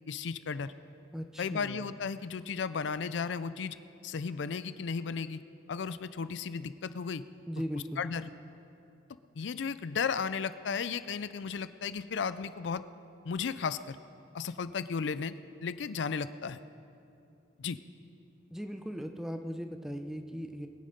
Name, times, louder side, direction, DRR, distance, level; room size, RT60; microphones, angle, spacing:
voice 1, 0.1-0.7 1.4-3.8 4.0-5.4 5.7-7.2 7.7-8.3 9.4-12.8 13.2-14.0 14.3-15.4 15.6-16.6 17.6-17.8, left 5 dB, 70° left, 14 dB, 0.4 m, -34 dB
voice 2, 1.1-1.9 7.5-8.0 18.5-20.7, equal, ahead, 6 dB, 0.6 m, -38 dB
21.5 x 9.0 x 5.1 m, 2.7 s
head